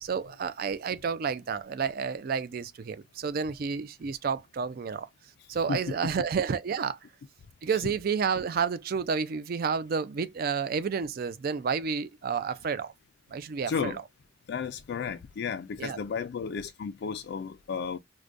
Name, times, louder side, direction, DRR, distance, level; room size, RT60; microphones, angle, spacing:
voice 1, 0.0-5.1 5.5-7.0 7.6-12.9 13.3-14.0 15.8-16.0, right 6 dB, 50° right, 0.4 m, -30 dB
voice 2, 13.7-14.0 14.5-18.0, left 6 dB, 55° left, 0.3 m, -33 dB
4.7 x 2.1 x 2.4 m
head